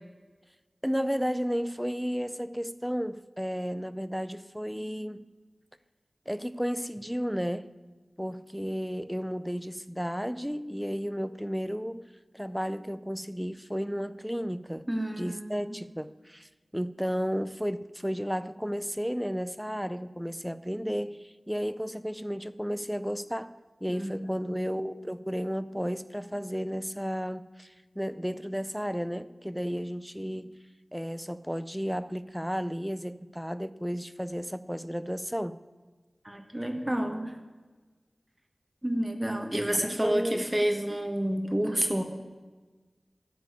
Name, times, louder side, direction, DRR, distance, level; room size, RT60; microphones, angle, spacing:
voice 1, 0.8-5.3 6.3-7.7 8.2-12.1 12.3-14.8 15.2-23.5 23.8-30.6 30.9-35.6 39.8-40.4, equal, 5° right, 15 dB, 0.5 m, -33 dB
voice 2, 14.9-15.8 23.9-24.6 36.2-37.3 38.8-42.0, right 1 dB, 20° right, 5 dB, 1.4 m, -29 dB
12.5 x 4.7 x 8.2 m, 1.3 s
wide cardioid pair, 45°, 0 cm